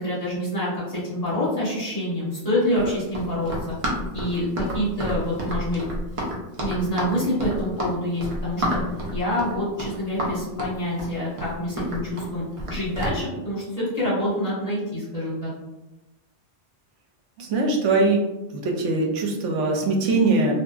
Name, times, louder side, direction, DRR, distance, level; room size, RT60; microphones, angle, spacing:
voice 1, 0.0-3.5 4.1-5.8 6.6-8.8 9.1-12.4 12.7-15.5, left 1 dB, 35° left, -9 dB, 1.2 m, -26 dB
Run, 2.7-13.2, equal, 45° right, 0.4 m, -30 dB
voice 2, 17.4-18.2 18.5-20.5, right 3 dB, 75° right, 0 dB, 0.9 m, -21 dB
2.7 x 2.3 x 2.3 m, 1.0 s
omnidirectional pair, 1.3 m